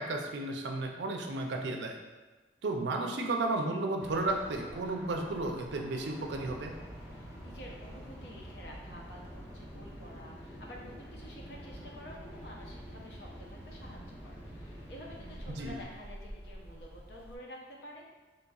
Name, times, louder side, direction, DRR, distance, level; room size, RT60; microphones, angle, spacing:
voice 1, 0.0-2.0 2.6-6.7 15.5-15.8, right 2 dB, 80° right, 3 dB, 0.4 m, -33 dB
sound 1, 4.0-17.4, equal, 10° right, 0.3 m, -52 dB
sound 2, 6.0-15.8, equal, 15° left, 0.7 m, -47 dB
voice 2, 7.1-18.0, equal, 65° left, -2 dB, 0.7 m, -50 dB
4.0 x 3.1 x 2.3 m, 1.2 s
head